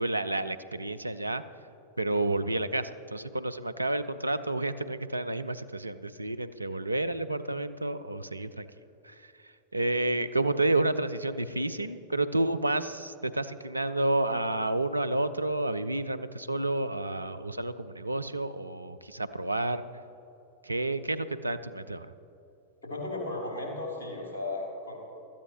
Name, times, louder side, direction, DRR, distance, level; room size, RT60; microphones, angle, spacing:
voice 1, 0.0-1.4 2.0-8.7 9.0-19.8 20.6-22.1, right 2 dB, 85° right, 11 dB, 0.4 m, -30 dB
voice 2, 22.8-25.0, left 2 dB, 70° left, -1 dB, 3.2 m, -35 dB
17.0 x 13.5 x 3.0 m, 2.9 s
figure-of-eight pair, 90°, 0 cm